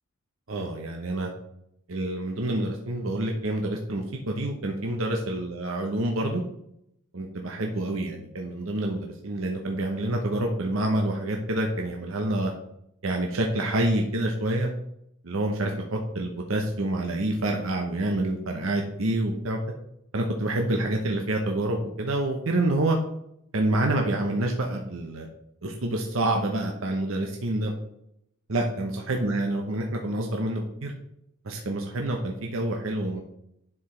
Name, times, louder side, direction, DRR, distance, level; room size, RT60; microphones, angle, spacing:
voice 1, 0.5-1.3 1.9-6.4 7.1-12.5 13.0-14.7 15.2-19.6 20.1-23.0 23.5-25.3 25.6-27.7 28.5-30.9 31.4-33.2, right 1 dB, 75° right, 2 dB, 0.9 m, -27 dB
10.5 x 4.8 x 3.3 m, 0.78 s
head